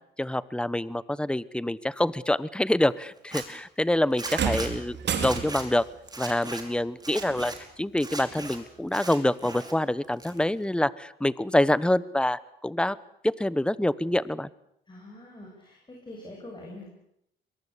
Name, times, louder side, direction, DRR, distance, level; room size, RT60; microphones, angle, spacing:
voice 1, 0.2-5.0 5.2-5.9 6.2-7.5 7.8-13.0 13.2-14.5, left 1 dB, 5° left, 19 dB, 1.0 m, -26 dB
Zipper (clothing), 3.2-3.4 4.2-4.7 5.2-5.6 6.1-6.6 7.0-7.6 8.0-8.6 8.9-9.7 10.0-10.6, right 3 dB, 20° right, 5.1 m, -38 dB
sound 1, 4.2-5.8 7.3-7.4 8.3-8.4, right 7 dB, 65° right, 4.4 m, -30 dB
voice 2, 14.9-16.9, left 1 dB, 25° left, -1 dB, 7.8 m, -44 dB
23.0 x 22.5 x 8.4 m, 0.75 s
cardioid pair, 90°, 20 cm